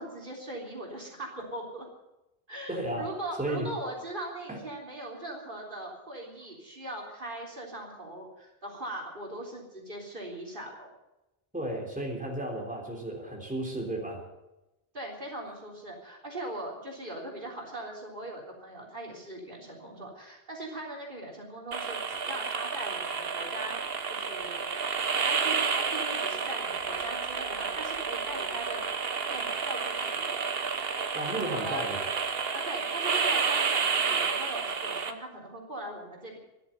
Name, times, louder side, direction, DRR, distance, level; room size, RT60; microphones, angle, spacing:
voice 1, 0.0-1.9 2.5-10.9 14.9-23.8 24.1-25.0 25.2-28.8 29.3-30.4 30.8-31.8 32.5-36.4, right 1 dB, 55° right, 0 dB, 3.8 m, -40 dB
voice 2, 2.7-3.7 4.5-4.6 11.5-14.3 31.1-32.0, right 1 dB, 10° right, -1 dB, 3.6 m, -34 dB
sound 1, 21.7-35.1, right 5 dB, 70° right, 1.3 m, -30 dB
13.5 x 11.5 x 9.1 m, 0.97 s
omnidirectional pair, 1.0 m